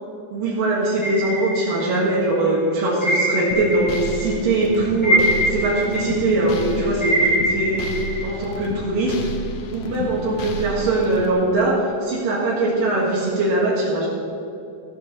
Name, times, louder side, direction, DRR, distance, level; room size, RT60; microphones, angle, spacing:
voice 1, 0.3-7.9 8.2-9.1 9.7-14.1, right 2 dB, 85° right, -6 dB, 3.3 m, -21 dB
sound 1, 1.0-2.3 3.0-4.3 4.6-8.3, right 1 dB, 25° left, 0.6 m, -24 dB
sound 2, 3.5-11.3, left 1 dB, 80° left, 1.3 m, -31 dB
13.0 x 7.8 x 6.7 m, 2.6 s
omnidirectional pair, 3.9 m